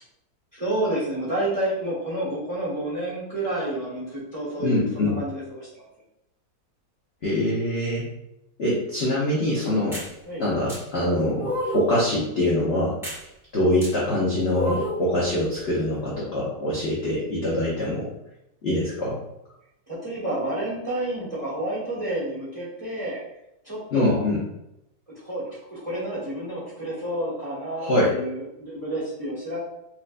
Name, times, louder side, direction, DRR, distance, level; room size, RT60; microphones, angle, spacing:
voice 1, 0.6-5.8 10.3-10.4 19.9-23.2 23.6-24.3 25.1-29.6, right 1 dB, 25° right, -7 dB, 1.0 m, -29 dB
voice 2, 4.6-5.1 7.2-8.1 8.6-10.0 10.4-13.0 13.5-18.1 18.6-19.2 23.9-24.4 27.8-28.2, left 1 dB, 65° left, -6 dB, 0.6 m, -24 dB
sound 1, 9.9-10.1 10.7-10.8 11.4-12.0 13.0-13.2 13.8-13.9 14.5-15.1, left 1 dB, ahead, 1.1 m, -29 dB
4.4 x 2.1 x 2.4 m, 0.83 s
omnidirectional pair, 2.0 m